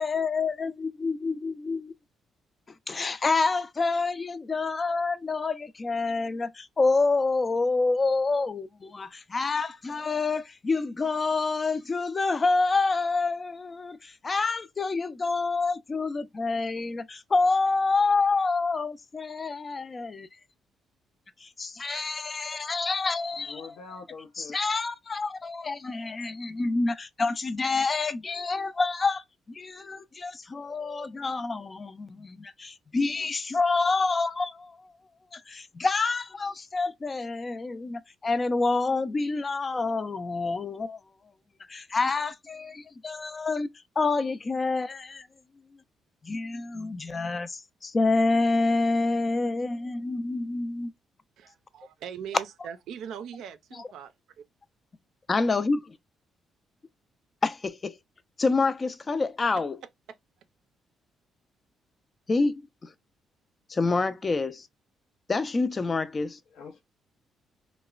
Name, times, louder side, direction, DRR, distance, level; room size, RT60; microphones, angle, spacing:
voice 1, 0.0-1.9 2.9-20.3 21.4-23.7 24.4-34.9 35.3-41.0 41.7-43.7 44.0-45.3 46.2-50.9 55.3-55.8 57.4-57.9 58.4-59.8 62.3-62.9 63.7-64.7 65.3-66.4, left 3 dB, 30° left, 0.4 m, -27 dB
voice 2, 23.4-24.5 66.5-66.8, left 5 dB, 85° left, 0.6 m, -44 dB
voice 3, 51.4-54.1 59.4-59.5, right 8 dB, 80° right, 0.4 m, -40 dB
3.0 x 2.1 x 2.3 m
cardioid pair, 90°, 0 cm